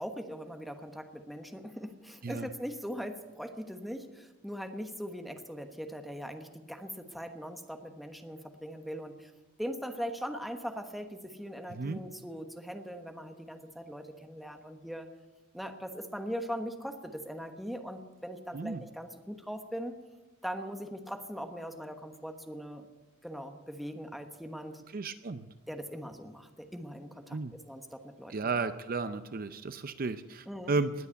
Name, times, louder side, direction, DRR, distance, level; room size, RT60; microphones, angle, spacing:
voice 1, 0.0-9.3 9.6-15.1 15.5-20.0 20.4-22.9 23.2-24.8 25.7-27.4 27.7-28.3 30.5-30.7, equal, ahead, 5 dB, 1.1 m, -40 dB
voice 2, 24.9-25.5 27.3-27.5 28.3-30.9, right 3 dB, 45° right, 11 dB, 0.6 m, -33 dB
20.0 x 8.2 x 8.3 m, 1.2 s
head